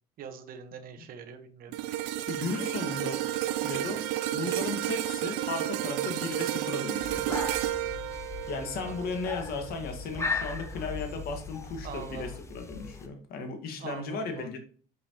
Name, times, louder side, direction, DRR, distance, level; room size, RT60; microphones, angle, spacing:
voice 1, 0.2-1.7 8.8-8.9 10.1-10.6 11.8-12.4 13.8-14.5, right 7 dB, 60° right, 1.2 m, -43 dB
sound 1, 1.7-10.1 10.5-10.7, right 13 dB, 80° right, 0.5 m, -32 dB
voice 2, 2.2-3.2 3.6-4.0 4.3-7.3 8.5-14.6, left 4 dB, 60° left, 1.8 m, -36 dB
sound 2, 7.0-13.1, left 4 dB, 15° left, 0.8 m, -38 dB
6.6 x 5.4 x 2.9 m
supercardioid pair, 90°, 17 cm